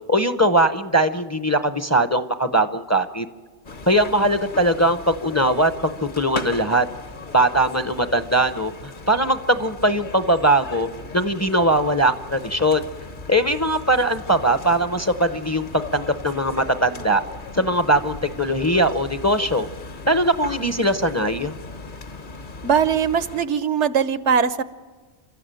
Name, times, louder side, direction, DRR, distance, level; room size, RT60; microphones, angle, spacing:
voice 1, 0.1-3.2 3.9-6.9 7.3-10.9 11.1-12.8 13.3-17.2 17.5-19.7 20.1-21.5, right 1 dB, 15° left, 10 dB, 0.7 m, -20 dB
sound 1, 3.6-23.4, left 3 dB, 45° left, 1.3 m, -38 dB
voice 2, 22.6-24.6, right 7 dB, 80° right, 14 dB, 1.2 m, -20 dB
29.5 x 13.5 x 9.1 m, 1.4 s
omnidirectional pair, 1.2 m